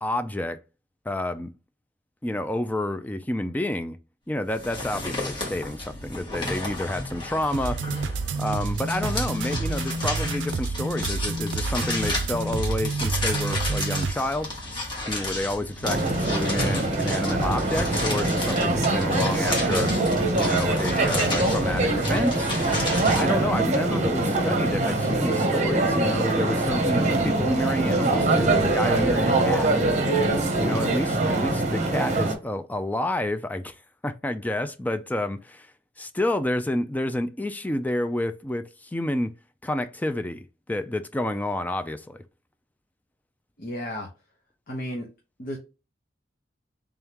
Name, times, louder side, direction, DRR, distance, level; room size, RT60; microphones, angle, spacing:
voice 1, 0.0-0.6 1.1-1.5 2.2-4.0 4.3-7.8 8.4-14.7 15.1-19.9 20.3-22.5 23.2-29.7 30.6-33.7 34.0-35.7 36.0-39.3 39.6-42.2, left 1 dB, 10° left, 0.3 m, -29 dB
sound 1, 4.5-23.2, left 2 dB, 25° left, 1.5 m, -33 dB
sound 2, 7.5-14.1, right 3 dB, 80° right, 0.4 m, -29 dB
sound 3, 15.8-32.3, right 2 dB, 40° right, 0.8 m, -23 dB
voice 2, 43.6-44.1 44.7-45.1 45.4-45.6, equal, 50° left, 1.0 m, -32 dB
3.6 x 3.5 x 2.9 m
head